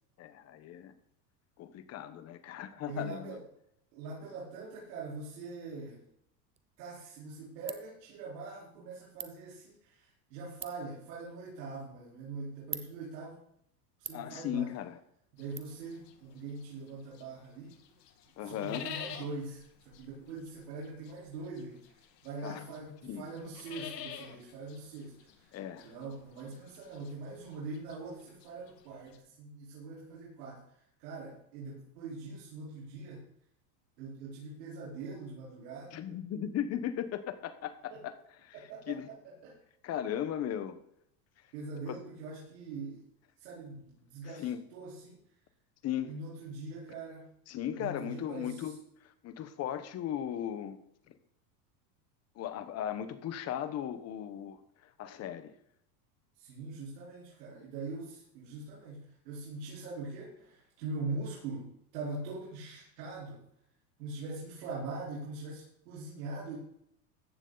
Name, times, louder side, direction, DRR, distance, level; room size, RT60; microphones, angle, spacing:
voice 1, 0.2-0.9 1.6-3.4 14.1-15.0 18.4-18.9 22.4-23.2 25.5-25.9 35.9-38.1 38.4-38.5 38.9-39.1 39.8-40.8 41.9-42.0 44.4-44.6 45.8-46.2 47.5-48.8 49.0-50.8 51.1-51.2 52.4-55.5, left 10 dB, 30° left, 11 dB, 1.1 m, -37 dB
voice 2, 2.9-3.4 3.9-6.0 6.8-13.4 14.0-14.7 15.3-17.7 18.4-30.6 31.0-33.2 34.0-36.0 37.9-38.0 38.5-39.5 41.5-43.0 43.4-45.2 46.1-47.3 47.8-48.7 56.4-63.4 64.0-66.6, right 3 dB, 80° right, -6 dB, 4.4 m, -42 dB
Ratchet pawl, 6.5-15.6, right 8 dB, 15° right, 0.5 m, -50 dB
sound 1, 15.4-17.4 17.7-29.2, left 9 dB, 85° left, 2.0 m, -48 dB
14.5 x 9.1 x 4.0 m, 0.73 s
supercardioid pair, 145°, 48 cm